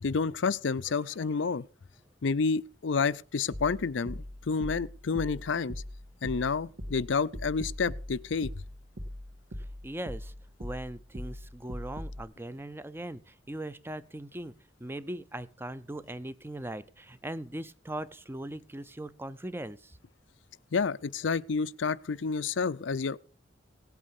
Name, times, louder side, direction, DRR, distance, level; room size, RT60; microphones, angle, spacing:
voice 1, 0.0-1.6 2.2-5.8 6.2-8.5 20.7-23.2, left 5 dB, 85° left, 0.5 m, -29 dB
sound 1, 3.5-12.2, equal, 60° right, 2.2 m, -41 dB
voice 2, 9.8-10.3 10.6-20.0, right 1 dB, 10° right, 0.6 m, -40 dB
17.5 x 8.4 x 5.4 m
head